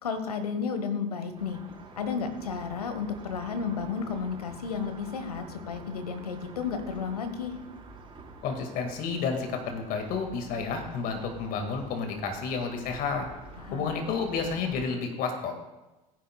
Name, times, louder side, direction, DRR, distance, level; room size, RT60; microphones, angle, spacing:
voice 1, 0.0-1.6 2.0-7.5 13.6-14.0, left 6 dB, 85° left, 9 dB, 1.2 m, -32 dB
sound 1, 1.3-14.9, right 3 dB, 25° right, 4.0 m, -48 dB
voice 2, 8.4-13.3 13.7-15.6, left 5 dB, 50° left, 5 dB, 2.0 m, -31 dB
16.5 x 9.9 x 2.3 m, 1.1 s
hypercardioid pair, 75°, 19 cm